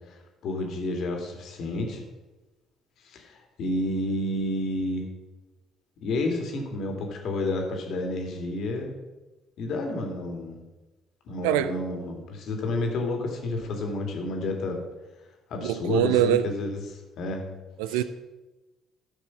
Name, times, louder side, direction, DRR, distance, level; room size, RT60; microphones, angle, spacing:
voice 1, 0.1-2.0 3.0-5.1 6.0-8.9 9.6-10.5 11.3-14.8 15.5-17.4 17.9-18.0, left 2 dB, 60° left, 2.1 m, -30 dB
voice 2, 15.6-16.5 17.8-18.0, right 11 dB, 75° right, 0.4 m, -23 dB
13.0 x 4.9 x 5.6 m
hypercardioid pair, 50°, 0 cm